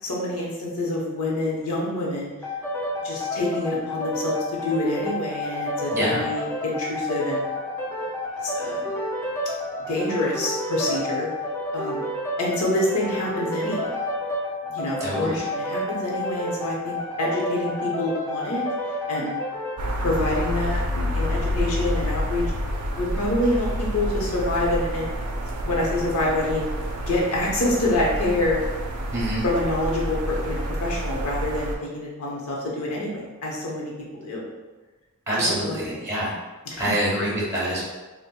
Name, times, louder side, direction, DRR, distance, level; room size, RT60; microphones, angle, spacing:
voice 1, 0.0-2.3 3.0-7.5 8.4-8.9 9.9-11.3 11.7-12.0 12.4-13.9 14.6-18.6 19.1-19.4 20.0-22.5 23.0-25.1 25.6-26.7 27.0-28.6 29.4-34.5 35.4-36.1 36.7-36.9, left 1 dB, 80° left, -3 dB, 0.8 m, -26 dB
sound 1, 2.4-19.8, left 1 dB, 15° left, 0.4 m, -30 dB
voice 2, 15.0-15.4 29.1-29.4 35.3-36.3 36.8-37.8, right 1 dB, 15° right, -7 dB, 0.9 m, -25 dB
sound 2, 19.8-31.7, equal, 75° right, 0.4 m, -28 dB
4.1 x 2.1 x 2.2 m, 1.2 s
head